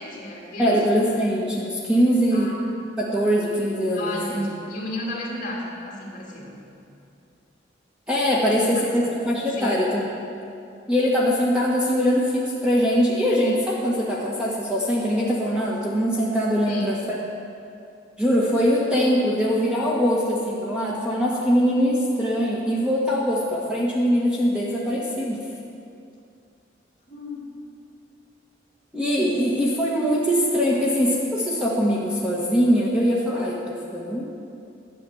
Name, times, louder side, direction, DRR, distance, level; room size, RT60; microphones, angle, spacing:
voice 1, 0.0-0.8 2.3-2.6 3.9-6.6 8.4-9.1 9.5-9.8 16.6-16.9 27.1-27.5, left 1 dB, 40° left, -4 dB, 2.7 m, -33 dB
voice 2, 0.6-2.5 3.0-4.4 8.1-10.1 10.9-17.2 18.2-25.4 28.9-34.3, equal, 5° right, -6 dB, 1.3 m, -22 dB
11.5 x 7.0 x 8.6 m, 2.5 s
head